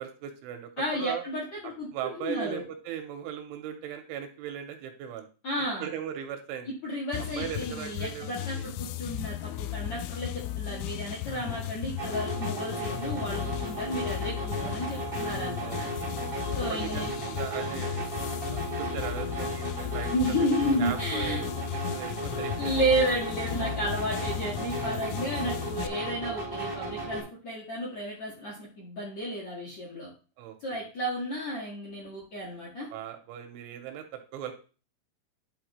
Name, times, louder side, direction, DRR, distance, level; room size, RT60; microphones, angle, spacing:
voice 1, 0.0-1.2 1.6-5.3 5.8-6.7 7.2-8.7 10.7-11.0 15.6-16.3 16.7-18.1 18.5-20.5 20.8-21.5 21.7-23.1 26.0-26.4 30.4-30.9 32.9-34.5, right 9 dB, 80° right, 6 dB, 3.0 m, -39 dB
voice 2, 0.8-2.6 5.4-5.9 6.8-15.9 16.6-17.1 20.1-21.4 22.6-30.1 30.6-32.9, equal, 55° left, -4 dB, 2.0 m, -32 dB
sound 1, 7.1-25.9, left 13 dB, 85° left, 2.7 m, -36 dB
sound 2, 12.0-27.2, right 2 dB, 60° right, 0.5 m, -35 dB
11.5 x 4.2 x 3.1 m, 0.35 s
omnidirectional pair, 5.8 m